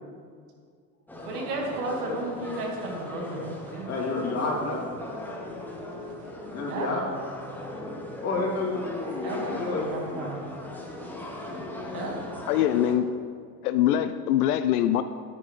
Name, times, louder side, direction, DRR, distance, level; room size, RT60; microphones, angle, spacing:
sound 1, 1.1-12.9, left 1 dB, 5° left, 1.3 m, -38 dB
voice 1, 1.2-3.9 6.0-6.3 6.7-6.9 9.2-10.4 11.9-12.2, right 2 dB, 70° right, 0 dB, 2.1 m, -34 dB
voice 2, 3.9-4.8 6.4-7.0 8.2-9.9, left 3 dB, 30° left, -3 dB, 2.7 m, -29 dB
voice 3, 12.5-13.1 13.6-15.0, left 11 dB, 65° left, 11 dB, 0.6 m, -23 dB
9.9 x 9.5 x 3.3 m, 2.1 s
hypercardioid pair, 85°, 48 cm